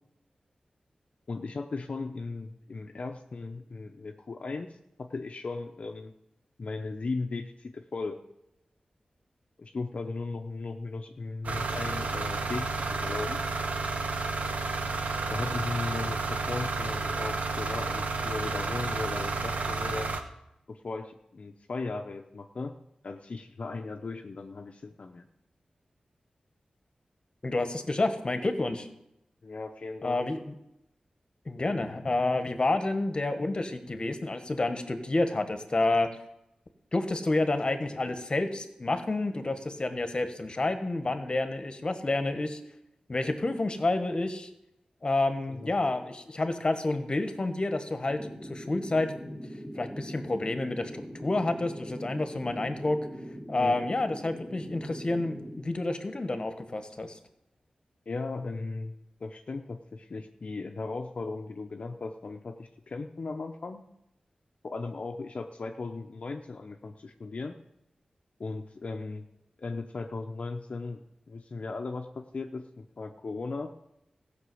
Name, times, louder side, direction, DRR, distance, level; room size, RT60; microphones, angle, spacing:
voice 1, 1.3-6.1 6.6-8.2 9.6-13.4 15.3-20.2 20.7-22.7 23.0-25.3 29.4-30.2 45.5-45.7 53.5-53.8 58.1-58.9 59.2-63.8 64.6-67.6 68.4-69.3 69.6-71.0 71.3-73.7, left 3 dB, 60° left, 4 dB, 0.8 m, -37 dB
sound 1, 11.4-20.2, right 3 dB, 85° right, 1.1 m, -31 dB
voice 2, 27.4-28.9 30.0-30.4 31.4-36.1 36.9-42.6 43.1-44.5 45.0-49.4 49.8-53.0 53.5-57.2, left 2 dB, 40° left, 8 dB, 1.4 m, -29 dB
sound 2, 48.1-55.6, equal, 25° right, 2.8 m, -42 dB
15.0 x 6.0 x 7.8 m, 0.85 s
wide cardioid pair, 75°, 2 cm